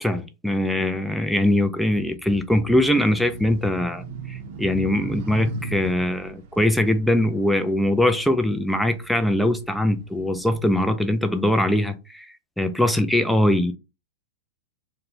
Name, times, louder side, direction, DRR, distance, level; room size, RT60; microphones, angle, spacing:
voice 1, 0.0-12.3 12.6-13.7, left 1 dB, ahead, 0.3 m, -22 dB
sound 1, 2.8-8.4 8.9-10.8, right 3 dB, 55° right, 0.6 m, -37 dB
2.2 x 2.0 x 3.6 m
hypercardioid pair, 115°, 0 cm